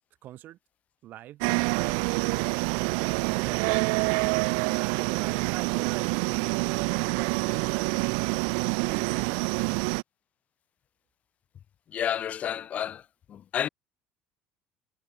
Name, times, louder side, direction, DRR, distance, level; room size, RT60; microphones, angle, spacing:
voice 1, 0.2-0.6 1.0-2.0 2.9-6.1 6.6-8.0 8.6-9.9, right 13 dB, 50° right, 6.3 m, -43 dB
sound 1, 1.4-10.0, right 40 dB or more, 90° right, 2.6 m, -27 dB
voice 2, 11.9-13.0 13.3-13.7, left 9 dB, 35° left, 2.9 m, -30 dB
cardioid pair, 145°, 4 cm